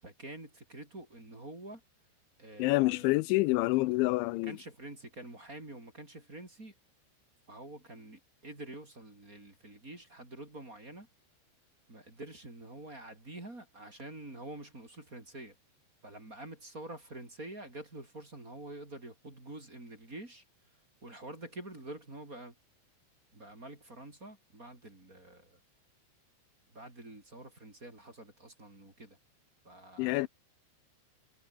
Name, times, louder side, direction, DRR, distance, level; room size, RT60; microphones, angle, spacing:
voice 1, 0.0-1.8 2.4-3.1 3.8-3.9 4.4-6.7 7.5-11.1 11.9-15.6 16.0-20.4 21.0-22.5 23.3-25.6 26.7-29.2 29.6-30.3, right 2 dB, 20° right, 4.6 m, -47 dB
voice 2, 2.6-4.6 30.0-30.3, left 21 dB, 90° left, 3.0 m, -27 dB
omnidirectional pair, 5.3 m